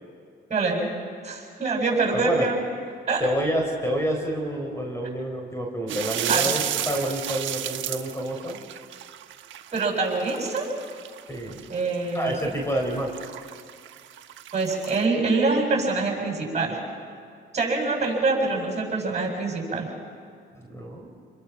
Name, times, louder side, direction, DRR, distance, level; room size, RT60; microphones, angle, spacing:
voice 1, 0.5-0.9 1.2-2.6 3.1-3.2 6.3-6.5 9.7-10.7 11.7-12.4 14.5-16.8 17.5-19.9, right 3 dB, 35° right, -1 dB, 7.6 m, -25 dB
voice 2, 2.1-2.5 3.2-8.6 11.3-11.7 12.1-13.1 20.7-21.1, equal, 15° left, 1 dB, 4.0 m, -28 dB
sound 1, 5.9-15.0, right 11 dB, 75° right, 1.2 m, -33 dB
30.0 x 22.0 x 6.0 m, 2.3 s
cardioid pair, 90°, 20 cm